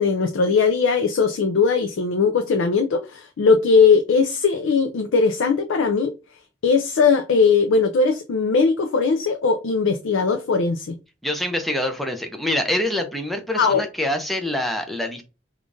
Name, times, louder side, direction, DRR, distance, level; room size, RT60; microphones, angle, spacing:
voice 1, 0.0-6.1 6.6-11.0 13.5-13.8, left 5 dB, 90° left, 0.4 m, -19 dB
voice 2, 11.2-15.2, left 1 dB, ahead, 0.5 m, -25 dB
4.9 x 2.4 x 2.5 m
head